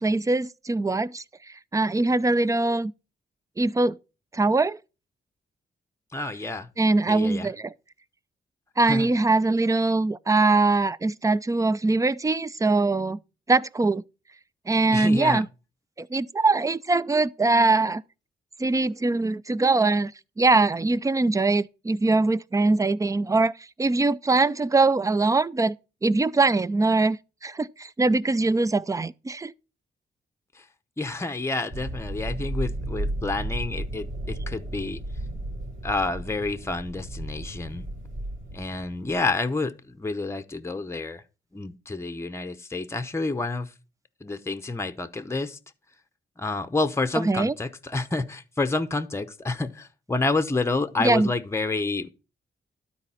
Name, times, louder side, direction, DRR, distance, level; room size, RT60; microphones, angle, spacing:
voice 1, 0.0-2.9 3.6-4.0 4.3-4.8 6.8-7.7 8.8-13.2 13.5-14.0 14.7-15.5 16.0-18.0 18.6-20.1 20.4-25.8 26.0-29.5 47.2-47.5 51.0-51.3, right 3 dB, 15° right, 0.4 m, -22 dB
voice 2, 6.1-6.7 7.1-7.5 8.9-9.1 14.9-15.4 30.6-30.7 31.0-35.0 35.8-37.9 38.5-41.2 41.5-43.7 44.2-45.6 46.4-52.1, left 3 dB, 15° left, 0.7 m, -29 dB
sound 1, 31.7-39.2, right 1 dB, 75° right, 3.6 m, -34 dB
12.5 x 4.2 x 5.6 m
cardioid pair, 90°, 20 cm